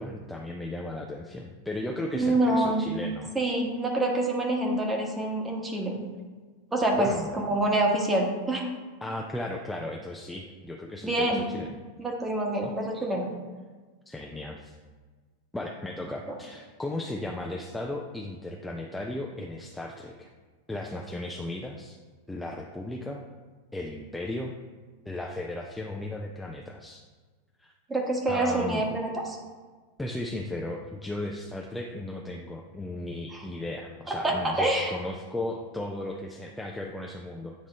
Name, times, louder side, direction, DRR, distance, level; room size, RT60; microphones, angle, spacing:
voice 1, 0.0-3.3 6.9-7.4 9.0-11.8 12.6-12.7 14.1-14.8 15.5-20.3 20.7-22.0 22.3-23.2 23.7-24.5 25.1-27.0 27.6-27.7 28.3-28.9 30.0-37.5, left 1 dB, 5° left, 0 dB, 0.4 m, -36 dB
voice 2, 2.1-2.9 3.3-6.0 6.7-8.7 11.0-11.4 12.0-13.3 27.9-29.4 33.3-33.4 34.1-34.9, right 1 dB, 15° right, 1 dB, 1.1 m, -26 dB
8.0 x 3.0 x 4.0 m, 1.4 s
figure-of-eight pair, 90°, 0 cm